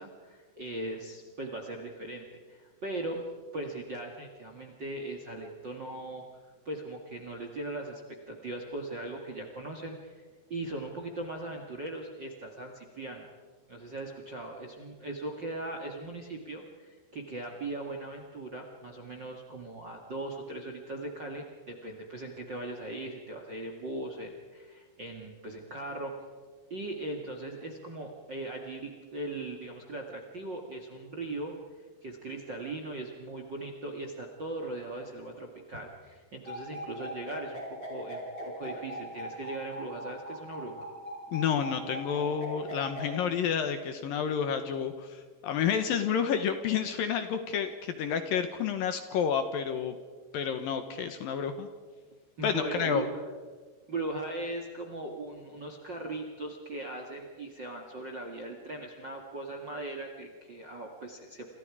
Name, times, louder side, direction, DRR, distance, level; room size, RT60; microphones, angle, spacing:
voice 1, 0.0-3.3 3.5-6.2 6.6-13.3 13.7-26.1 26.7-40.9 52.4-53.2 53.9-61.5, right 2 dB, 40° right, 3 dB, 1.6 m, -39 dB
sound 1, 36.5-43.0, equal, 20° left, 6.4 m, -40 dB
voice 2, 41.3-50.0 50.3-51.7 52.4-53.0, left 7 dB, 70° left, 8 dB, 2.5 m, -30 dB
28.5 x 27.5 x 4.9 m, 1.5 s
omnidirectional pair, 5.0 m